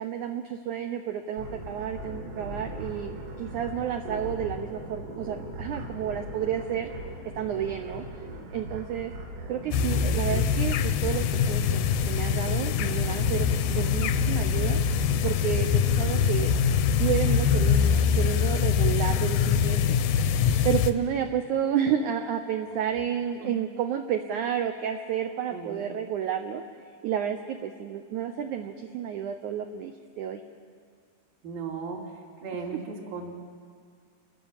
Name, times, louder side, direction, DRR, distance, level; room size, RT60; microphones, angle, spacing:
voice 1, 0.0-6.9 7.4-8.0 8.5-9.1 9.5-14.8 15.2-16.6 17.0-20.0 20.6-26.6 27.0-30.4, right 9 dB, 85° right, 6 dB, 1.7 m, -31 dB
sound 1, 1.4-18.1, right 1 dB, 45° right, 2.4 m, -39 dB
sound 2, 9.7-20.9, left 7 dB, 75° left, 2.1 m, -24 dB
voice 2, 25.5-25.9 31.4-33.4, right 4 dB, 65° right, -5 dB, 4.3 m, -37 dB
29.0 x 12.5 x 7.3 m, 2.1 s
omnidirectional pair, 4.5 m